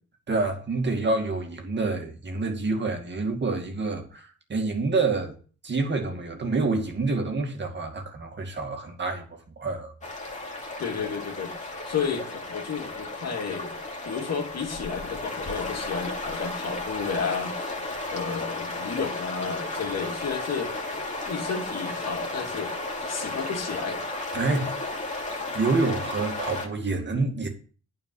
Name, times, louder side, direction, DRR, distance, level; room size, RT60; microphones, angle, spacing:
voice 1, 0.3-5.3 5.6-9.9 10.3-10.6 24.3-24.7 25.5-27.5, right 3 dB, 35° right, 2.3 m, -27 dB
sound 1, 10.0-26.7, left 2 dB, 25° left, 2.6 m, -34 dB
voice 2, 10.8-13.7 14.0-17.6 18.1-20.7 21.3-22.7 23.1-24.0, left 6 dB, 55° left, 2.5 m, -32 dB
9.0 x 4.8 x 7.6 m
cardioid pair, 90°, 30 cm